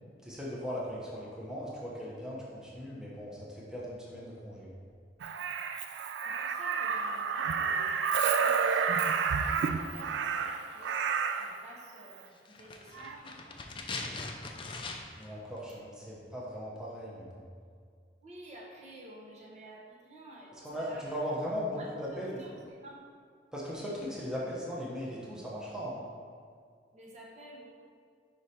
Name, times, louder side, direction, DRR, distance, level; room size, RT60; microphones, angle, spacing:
voice 1, 0.2-4.7 15.2-17.4 20.5-22.4 23.5-26.0, equal, 5° right, -6 dB, 0.9 m, -38 dB
Crow, 5.2-11.5 12.9-13.1, right 6 dB, 85° right, 0.3 m, -30 dB
voice 2, 6.2-11.0 11.4-13.4 18.2-21.2 21.8-21.9 22.4-23.0 26.9-27.7, right 1 dB, 40° right, -4 dB, 1.0 m, -51 dB
sound 1, 12.5-15.3 15.6-15.7, left 3 dB, 30° left, 0.5 m, -41 dB
5.0 x 4.9 x 4.2 m, 2.1 s
head